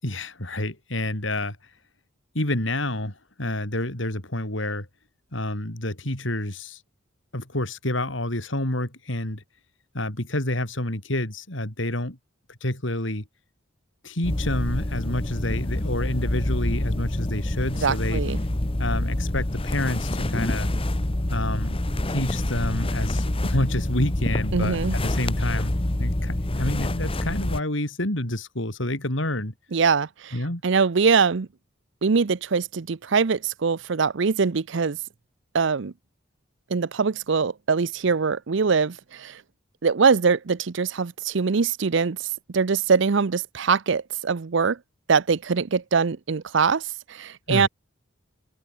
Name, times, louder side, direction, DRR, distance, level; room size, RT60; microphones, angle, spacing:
voice 1, 0.0-1.6 2.3-4.9 5.3-6.8 7.3-9.4 9.9-12.2 12.6-13.2 14.0-18.2 18.8-20.7 21.3-21.8 22.1-25.7 26.0-29.5 30.3-30.6 47.5-47.7, left 1 dB, 70° left, 5.1 m, -28 dB
sound 1, 14.2-27.6, left 1 dB, 30° left, 1.2 m, -26 dB
voice 2, 17.8-18.4 24.5-24.9 29.7-30.3 30.6-31.5 32.0-35.0 35.5-35.9 36.7-39.4 39.8-42.3 42.5-44.8 45.1-47.7, right 5 dB, 65° right, 0.6 m, -23 dB
head